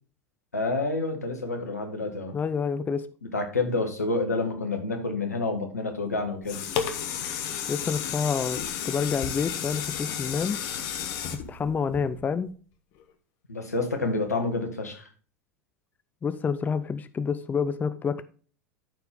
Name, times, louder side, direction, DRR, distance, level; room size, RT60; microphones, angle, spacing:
voice 1, 0.5-2.4 3.2-6.6 13.5-15.1, left 3 dB, 90° left, 1.9 m, -28 dB
voice 2, 2.3-3.1 7.7-8.6 8.8-10.6 11.3-12.5 16.2-18.2, left 6 dB, 20° left, 0.6 m, -28 dB
sound 1, 6.2-12.5 13.0-13.1, left 8 dB, 50° left, 1.4 m, -32 dB
13.0 x 4.6 x 3.6 m
hypercardioid pair, 85°, 8 cm